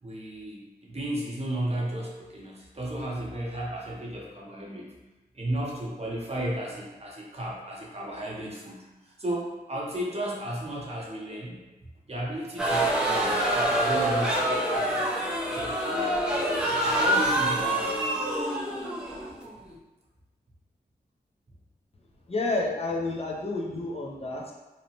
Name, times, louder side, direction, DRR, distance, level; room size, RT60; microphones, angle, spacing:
voice 1, 0.0-4.9 5.3-11.6 12.1-16.4 16.8-18.0, right 1 dB, 40° right, -4 dB, 0.7 m, -34 dB
sound 1, 12.6-19.7, right 1 dB, 5° right, 0.6 m, -26 dB
voice 2, 22.3-24.5, left 2 dB, 35° left, -2 dB, 0.6 m, -30 dB
2.8 x 2.0 x 2.9 m, 1.1 s
cardioid pair, 55°, 17 cm